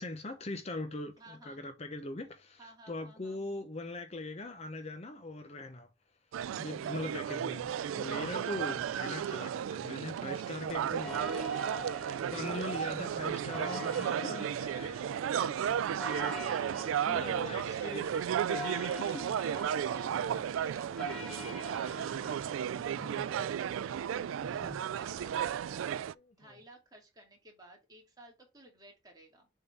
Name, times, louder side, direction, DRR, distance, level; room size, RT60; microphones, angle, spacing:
voice 1, 0.0-5.9 6.5-11.2 12.3-15.0 15.3-15.8 16.9-18.1 18.5-19.3 26.2-26.5, left 2 dB, 35° left, 0.7 m, -41 dB
voice 2, 1.2-1.6 2.6-3.4 6.8-7.3 10.8-12.9 16.9-18.6 19.4-19.6 19.9-29.5, right 1 dB, 20° right, 2.2 m, -56 dB
sound 1, 6.3-26.1, right 9 dB, 90° right, 0.3 m, -34 dB
sound 2, 10.7-25.5, left 3 dB, 5° left, 1.5 m, -46 dB
6.9 x 3.7 x 4.2 m
head